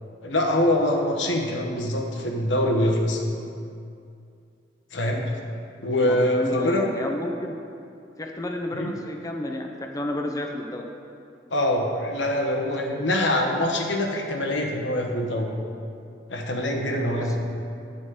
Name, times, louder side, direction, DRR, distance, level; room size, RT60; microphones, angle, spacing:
voice 1, 0.2-3.5 4.9-5.3 5.8-6.8 8.7-8.9 11.5-15.5 16.3-17.4, left 1 dB, 85° left, 2 dB, 1.2 m, -24 dB
voice 2, 6.0-7.6 8.2-10.9 17.1-17.4, left 1 dB, 20° left, 2 dB, 0.5 m, -31 dB
11.0 x 4.3 x 7.8 m, 2.5 s
head